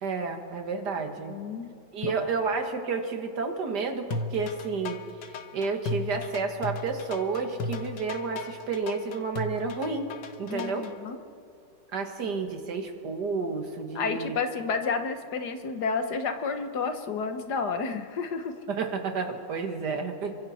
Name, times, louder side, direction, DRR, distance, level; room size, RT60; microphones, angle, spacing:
voice 1, 0.0-1.4 1.9-10.1 10.4-10.9 11.9-14.4 18.7-20.4, right 4 dB, 70° right, 5 dB, 2.3 m, -31 dB
voice 2, 1.2-1.7 2.0-2.3 10.5-11.2 14.0-18.5, left 5 dB, 65° left, 7 dB, 1.8 m, -31 dB
sound 1, 4.1-10.9, left 3 dB, 90° left, 1.8 m, -35 dB
29.0 x 24.0 x 4.3 m, 2.5 s
omnidirectional pair, 1.9 m